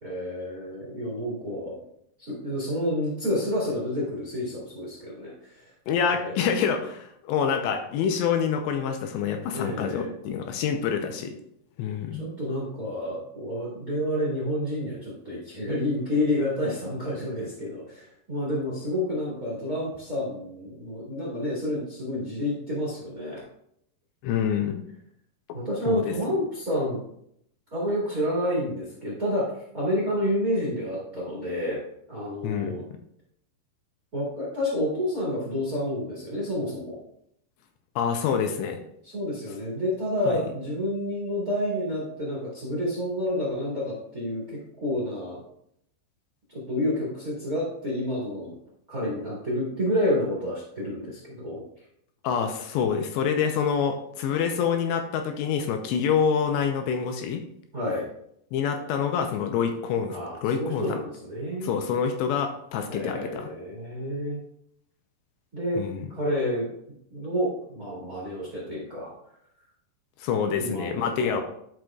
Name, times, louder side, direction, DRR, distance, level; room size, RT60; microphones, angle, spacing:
voice 1, 0.0-1.7 2.2-5.7 6.2-6.4 9.5-10.1 12.1-23.4 25.5-27.0 27.7-31.8 32.1-32.8 34.1-37.0 39.0-45.4 46.5-48.5 48.9-51.6 57.7-58.1 60.1-61.7 62.9-64.4 65.5-65.8 66.1-66.7 67.1-69.1 70.6-71.4, left 1 dB, 35° right, -5 dB, 1.5 m, -29 dB
voice 2, 5.9-11.3 11.8-12.3 24.2-24.8 25.9-26.1 32.4-32.8 38.0-38.8 40.3-40.4 52.2-57.4 58.5-60.2 60.4-61.0 61.6-63.5 65.8-66.1 70.2-71.4, left 7 dB, 80° left, 5 dB, 2.7 m, -26 dB
11.5 x 6.0 x 2.3 m, 0.72 s
omnidirectional pair, 5.2 m